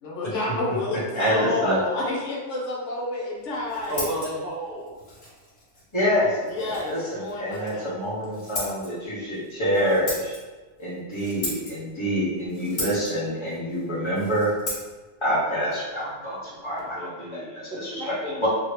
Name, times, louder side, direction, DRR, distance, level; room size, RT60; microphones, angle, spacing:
voice 1, 0.0-4.1 6.4-7.9, left 2 dB, 75° left, -3 dB, 1.0 m, -29 dB
voice 2, 1.1-1.8 5.9-10.3 10.8-14.5 15.2-17.9 18.4-18.5, equal, 25° left, -9 dB, 1.0 m, -26 dB
Scissors, 3.4-16.9, left 1 dB, 60° left, 1.4 m, -39 dB
voice 3, 3.9-4.9 16.7-18.5, right 1 dB, 55° right, -5 dB, 0.9 m, -33 dB
2.8 x 2.7 x 3.2 m, 1.3 s
omnidirectional pair, 1.3 m